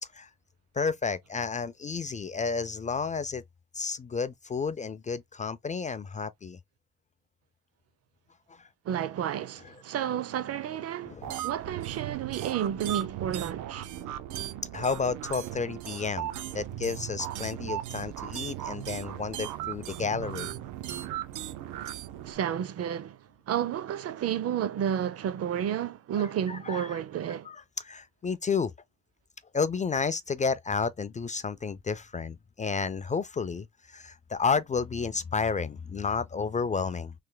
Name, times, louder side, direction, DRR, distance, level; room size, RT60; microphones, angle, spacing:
voice 1, 0.7-3.4 3.7-6.6 8.5-8.7 11.1-11.3 14.7-20.5 26.5-27.0 27.5-28.7 29.5-37.1, left 5 dB, 25° left, 0.4 m, -31 dB
voice 2, 8.8-13.9 22.3-27.5, right 9 dB, 55° right, 0.6 m, -31 dB
sound 1, 11.2-22.3, right 12 dB, 90° right, 0.7 m, -37 dB
3.3 x 2.1 x 3.7 m
cardioid pair, 90°, 30 cm